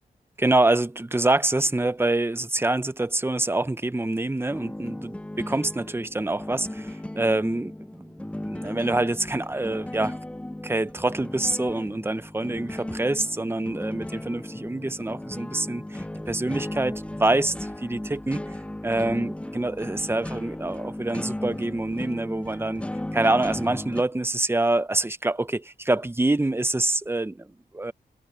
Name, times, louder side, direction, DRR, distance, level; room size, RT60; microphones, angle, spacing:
voice 1, 0.4-10.2 10.6-18.5 18.8-22.8 23.1-27.9, right 2 dB, 15° right, 1.0 m, -26 dB
sound 1, 4.5-24.0, left 1 dB, 10° left, 0.6 m, -36 dB
cardioid pair, 55°, 16 cm